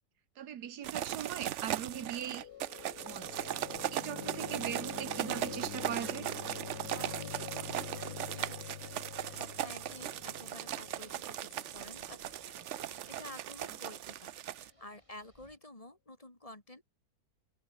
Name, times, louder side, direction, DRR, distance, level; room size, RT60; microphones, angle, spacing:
voice 1, 0.4-2.5 3.0-3.5 3.9-6.3, right 9 dB, 85° right, 1.6 m, -40 dB
sound 1, 0.8-14.7, right 12 dB, 60° right, 0.8 m, -38 dB
sound 2, 1.8-13.8, left 10 dB, 85° left, 1.5 m, -47 dB
sound 3, 2.4-15.6, right 1 dB, 20° right, 5.5 m, -66 dB
voice 2, 6.9-16.8, left 1 dB, 20° left, 2.8 m, -51 dB
omnidirectional pair, 1.7 m